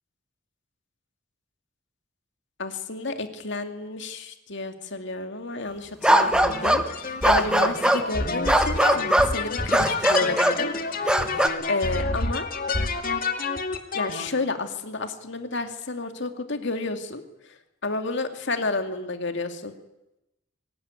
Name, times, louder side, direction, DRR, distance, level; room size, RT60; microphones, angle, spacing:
voice 1, 2.6-10.7 11.0-11.2 11.7-12.5 13.9-17.5 17.8-19.8, left 3 dB, 65° left, 7 dB, 2.5 m, -31 dB
sound 1, 6.0-6.9 7.2-8.1 8.5-9.3 9.7-10.6 11.1-11.5, right 1 dB, 5° right, 1.4 m, -20 dB
sound 2, 6.1-14.3, left 3 dB, 45° left, 2.1 m, -29 dB
22.5 x 19.5 x 9.7 m, 0.92 s
head